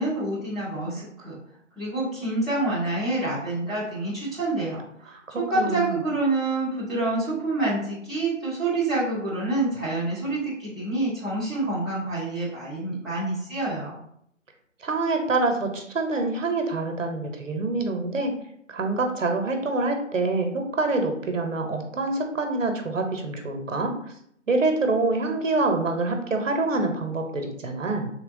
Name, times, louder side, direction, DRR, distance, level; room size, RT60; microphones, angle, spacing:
voice 1, 0.0-1.4 1.8-4.8 5.4-14.0, right 2 dB, ahead, -11 dB, 0.5 m, -27 dB
voice 2, 5.5-6.0 14.8-18.3 18.7-23.9 24.5-28.1, right 3 dB, 75° right, 4 dB, 0.8 m, -26 dB
3.3 x 2.9 x 2.5 m, 0.70 s
figure-of-eight pair, 165°, 39 cm